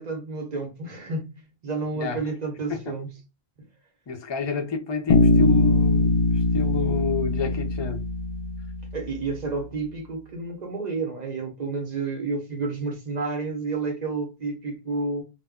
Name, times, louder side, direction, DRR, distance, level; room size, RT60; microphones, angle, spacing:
voice 1, 0.0-3.1 3.6-3.7 8.9-15.2, right 3 dB, 50° right, 0.7 m, -30 dB
voice 2, 4.1-6.2 6.5-8.0, left 4 dB, 40° left, 0.4 m, -29 dB
Bass guitar, 5.1-9.1, left 2 dB, 70° left, 0.8 m, -21 dB
2.1 x 2.1 x 3.5 m
omnidirectional pair, 1.0 m